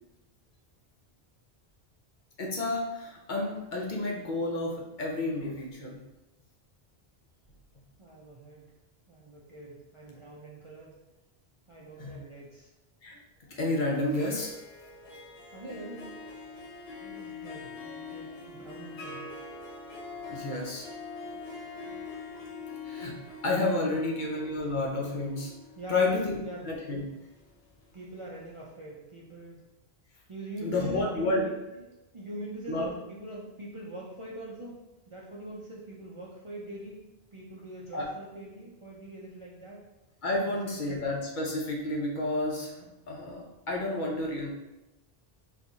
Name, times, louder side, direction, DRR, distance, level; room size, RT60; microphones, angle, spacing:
voice 1, 2.4-6.0 12.0-12.2 13.0-13.2 13.5-14.6 20.3-20.9 21.2-22.0 22.8-23.2 23.4-25.5 25.9-26.4 26.6-27.1 30.6-31.4 32.7-32.9 37.9-38.1 40.2-44.5, left 2 dB, 55° left, -1 dB, 0.7 m, -31 dB
voice 2, 8.0-8.7 9.1-11.0 11.7-12.7 15.5-16.2 16.9-19.4 24.1-24.3 25.8-26.7 27.9-29.6 30.3-37.0 37.3-39.8 40.4-41.0, right 1 dB, 45° right, -5 dB, 0.4 m, -43 dB
Harp, 14.0-27.9, left 4 dB, 80° left, 1.0 m, -43 dB
4.4 x 2.4 x 2.6 m, 0.98 s
omnidirectional pair, 1.0 m